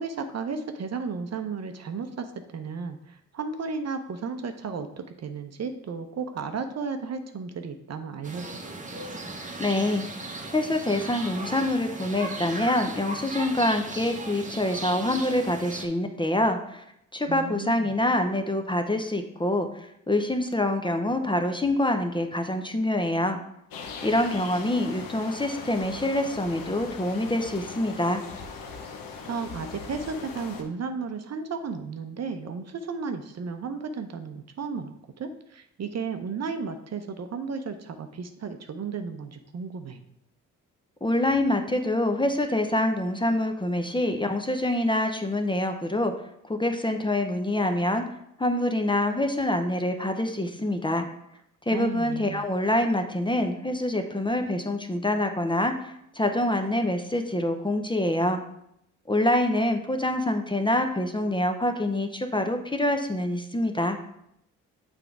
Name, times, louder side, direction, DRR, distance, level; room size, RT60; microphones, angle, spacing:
voice 1, 0.0-8.6 17.3-17.9 29.2-40.0 51.7-52.5, right 5 dB, 45° right, 7 dB, 0.7 m, -34 dB
sound 1, 8.2-15.9, right 2 dB, 20° right, 1.1 m, -37 dB
voice 2, 9.6-16.8 17.1-23.4 24.0-28.2 41.0-46.1 46.4-48.0 48.4-51.0 51.7-58.4 59.1-64.0, left 1 dB, 15° left, 6 dB, 0.7 m, -26 dB
sound 2, 23.7-30.6, left 5 dB, 65° left, 1.0 m, -40 dB
6.8 x 3.5 x 4.7 m, 0.77 s
hypercardioid pair, 50°, 37 cm